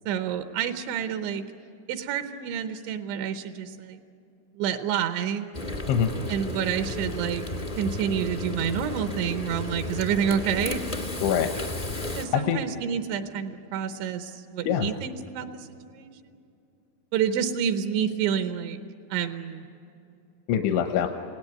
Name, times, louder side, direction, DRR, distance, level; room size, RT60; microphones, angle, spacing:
voice 1, 0.1-1.4 1.9-4.0 4.6-5.5 6.3-7.5 7.8-10.8 12.1-16.4 17.1-18.8 19.1-19.7, right 8 dB, 85° right, 7 dB, 3.3 m, -29 dB
Frying (food), 5.5-12.2, left 2 dB, 50° left, 0.6 m, -33 dB
voice 2, 11.2-11.5 11.9-12.6 14.7-14.9 20.5-21.1, left 9 dB, 85° left, 4 dB, 3.3 m, -25 dB
28.5 x 18.0 x 9.5 m, 2.6 s
omnidirectional pair, 5.2 m